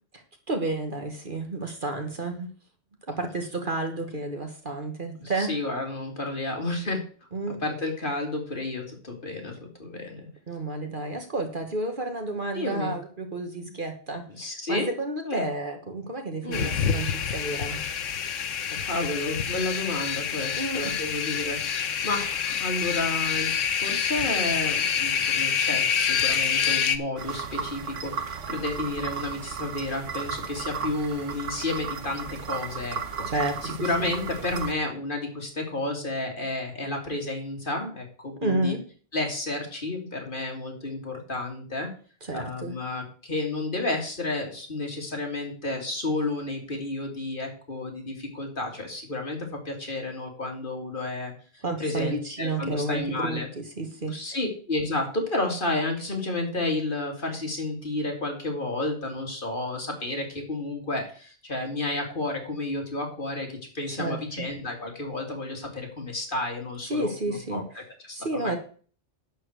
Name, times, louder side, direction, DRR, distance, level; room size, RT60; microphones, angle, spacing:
voice 1, 0.5-2.5 3.1-5.6 7.3-7.6 10.5-17.8 20.6-20.9 33.3-34.1 38.4-38.8 42.2-42.7 51.6-54.2 63.9-64.2 66.8-67.8 68.1-68.6, right 2 dB, 45° right, 5 dB, 1.6 m, -31 dB
voice 2, 5.2-7.0 7.5-10.3 12.5-12.9 14.3-14.9 15.3-15.5 16.4-16.7 18.8-23.5 23.8-33.3 33.6-38.7 39.1-41.9 42.3-51.3 51.8-53.5 54.0-67.6 68.1-68.6, left 2 dB, 45° left, 2 dB, 2.7 m, -31 dB
sound 1, 16.5-27.0, left 7 dB, 90° left, 1.3 m, -27 dB
sound 2, 27.2-34.7, right 6 dB, 80° right, 1.4 m, -35 dB
11.0 x 4.5 x 8.0 m, 0.42 s
omnidirectional pair, 1.2 m